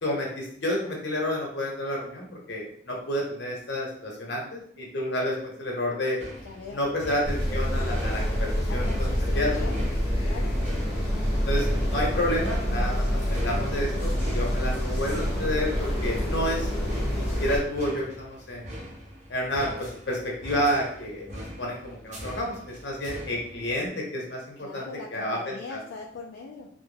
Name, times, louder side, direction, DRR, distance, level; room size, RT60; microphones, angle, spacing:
voice 1, 0.0-6.2 6.7-9.6 11.4-16.7 17.0-18.7 19.3-25.8, equal, 70° left, -2 dB, 0.8 m, -30 dB
sound 1, 6.2-23.9, equal, 40° right, 0.5 m, -42 dB
voice 2, 6.4-6.8 8.7-9.9 10.2-10.5 24.6-26.7, left 4 dB, 85° left, -1 dB, 0.3 m, -41 dB
sound 2, 7.2-17.6, equal, 5° right, 0.9 m, -27 dB
2.2 x 2.0 x 3.2 m, 0.66 s
head